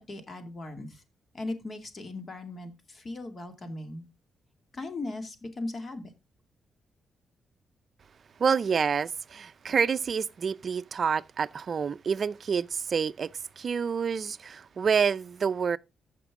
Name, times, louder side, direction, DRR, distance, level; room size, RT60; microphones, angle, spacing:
voice 1, 0.1-1.0 1.3-4.0 4.7-6.1, left 2 dB, 35° left, 2.3 m, -38 dB
voice 2, 8.4-13.3 13.6-15.8, right 6 dB, 50° right, 0.5 m, -28 dB
14.5 x 6.0 x 3.6 m
cardioid pair, 115°, 0 cm